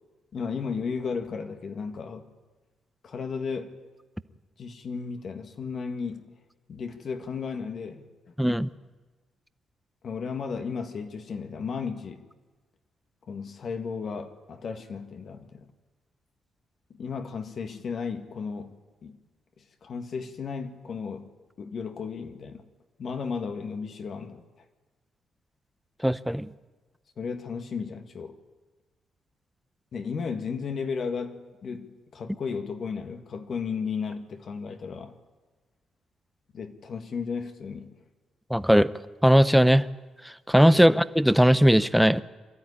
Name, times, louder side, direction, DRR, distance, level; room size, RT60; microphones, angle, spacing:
voice 1, 0.3-2.3 3.0-3.7 4.6-6.3 6.7-8.3 10.0-12.3 13.3-15.7 16.9-19.2 19.6-21.3 21.6-22.6 23.0-24.4 27.2-28.4 29.9-35.2 36.5-38.0 40.7-40.9, left 5 dB, 55° left, 1.9 m, -34 dB
voice 2, 8.4-8.7 26.0-26.5 38.5-38.9 39.2-39.9 40.5-42.2, equal, ahead, 0.7 m, -19 dB
24.0 x 13.0 x 9.9 m
cardioid pair, 90°, 0 cm